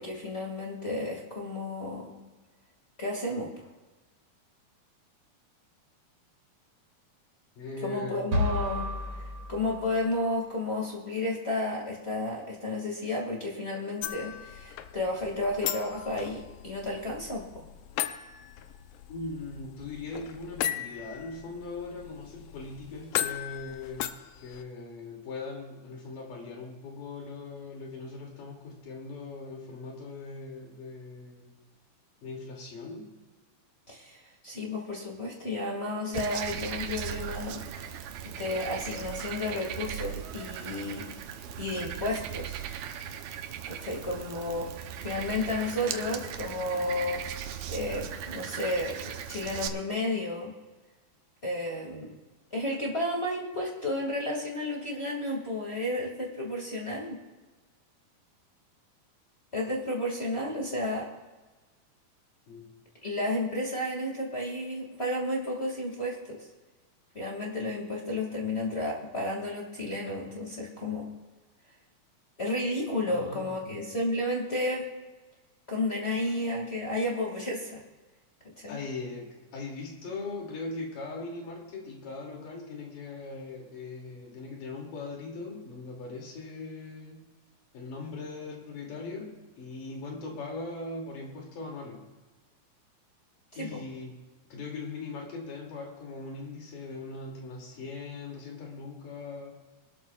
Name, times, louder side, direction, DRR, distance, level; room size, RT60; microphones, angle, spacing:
voice 1, 0.0-2.1 3.0-3.5 7.8-8.9 9.2-17.6 33.9-37.6 38.2-41.1 41.6-42.7 43.8-47.2 47.7-50.5 51.4-52.1 52.5-57.2 59.5-61.1 63.0-66.4 67.1-71.1 72.4-74.8 75.7-77.8 78.6-78.8 93.5-93.8, left 1 dB, 25° left, -3 dB, 1.4 m, -32 dB
voice 2, 7.6-8.3 19.1-31.5 32.2-33.1 62.5-62.7 73.1-73.6 78.7-87.3 87.7-92.0 93.5-94.1 94.5-99.6, left 3 dB, 60° left, -1 dB, 4.0 m, -40 dB
sound 1, 8.3-10.3, left 2 dB, 40° right, 3.0 m, -32 dB
sound 2, 14.0-24.6, left 11 dB, 80° left, 2.2 m, -37 dB
Frog, 36.1-49.7, right 9 dB, 75° right, 1.7 m, -38 dB
23.5 x 12.5 x 2.4 m, 1.2 s
omnidirectional pair, 4.3 m